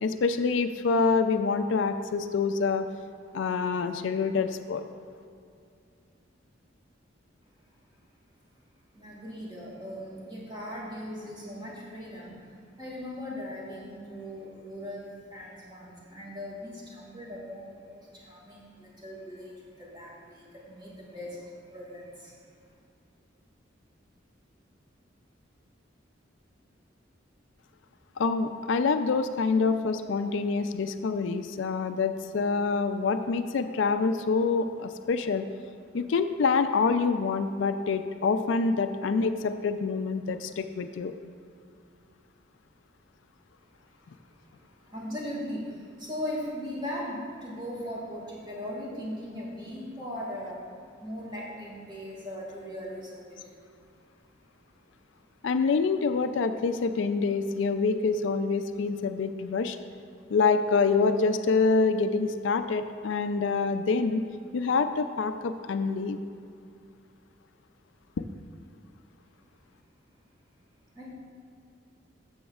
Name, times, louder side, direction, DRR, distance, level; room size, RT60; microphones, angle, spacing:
voice 1, 0.0-2.8 3.3-4.8 28.2-35.5 35.9-41.1 55.4-59.8 60.3-64.2 64.5-66.2 68.2-68.3, left 4 dB, 70° left, 9 dB, 0.4 m, -26 dB
voice 2, 8.9-12.5 12.8-22.5 44.2-44.4 44.7-50.7 51.0-53.6 70.9-71.1, equal, 25° right, -5 dB, 2.1 m, -39 dB
13.0 x 7.0 x 2.4 m, 2.4 s
head